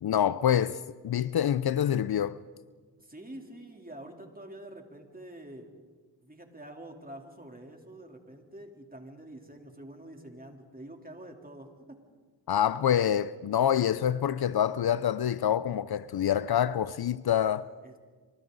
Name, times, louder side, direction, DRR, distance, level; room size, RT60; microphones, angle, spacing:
voice 1, 0.0-2.4 12.5-17.7, left 10 dB, 65° left, 0.6 m, -26 dB
voice 2, 3.0-5.7 6.2-12.1 17.8-18.0, right 1 dB, 20° right, 3.6 m, -47 dB
26.0 x 25.5 x 4.1 m
cardioid pair, 45°, 42 cm